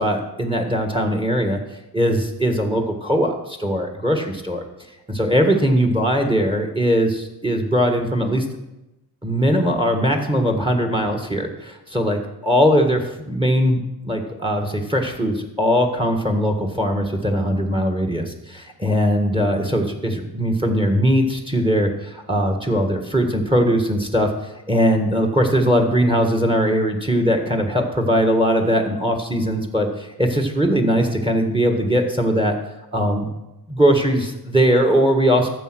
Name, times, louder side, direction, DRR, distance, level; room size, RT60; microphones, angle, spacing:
voice 1, 0.0-1.6 1.9-4.6 5.1-8.4 9.2-32.5 32.9-33.2 33.7-35.5, equal, 15° right, 4 dB, 1.6 m, -20 dB
14.0 x 7.2 x 6.2 m, 0.96 s
wide cardioid pair, 100°, 40 cm